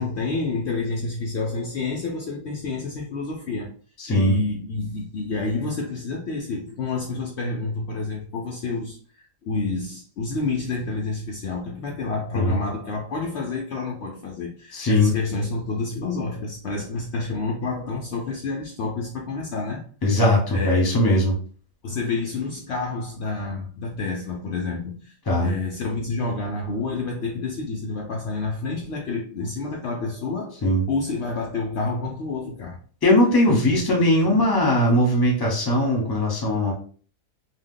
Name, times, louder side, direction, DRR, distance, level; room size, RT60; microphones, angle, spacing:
voice 1, 0.0-3.7 4.1-19.8 20.5-20.8 21.8-25.1 25.4-30.6 30.9-32.8 33.5-33.6 34.4-34.5, left 3 dB, 80° left, 0.6 m, -29 dB
voice 2, 4.0-4.3 12.3-12.6 14.7-15.1 20.0-21.4 25.3-25.5 30.6-30.8 33.0-36.7, left 1 dB, 20° left, 0.6 m, -20 dB
2.8 x 2.1 x 3.6 m
omnidirectional pair, 1.7 m